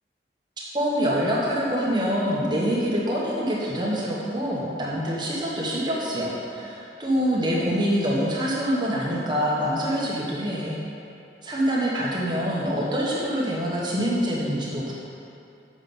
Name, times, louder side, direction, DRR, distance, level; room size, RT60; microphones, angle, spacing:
voice 1, 0.6-10.8 11.4-14.9, equal, 25° right, -6 dB, 1.2 m, -25 dB
7.4 x 5.9 x 5.4 m, 2.7 s
head